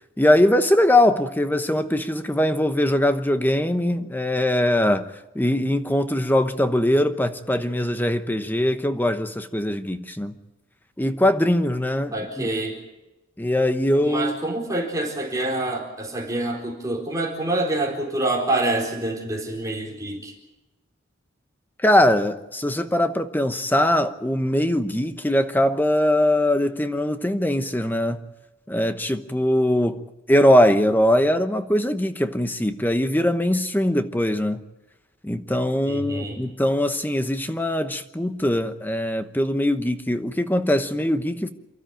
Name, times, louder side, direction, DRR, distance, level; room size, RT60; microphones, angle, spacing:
voice 1, 0.2-10.3 11.0-12.5 13.4-14.4 21.8-28.2 28.7-30.0 30.3-34.6 35.2-41.5, left 1 dB, 10° left, 1.0 m, -21 dB
voice 2, 12.1-12.8 14.0-20.3 35.9-36.4, right 2 dB, 15° right, 4.2 m, -26 dB
28.5 x 13.0 x 9.0 m
head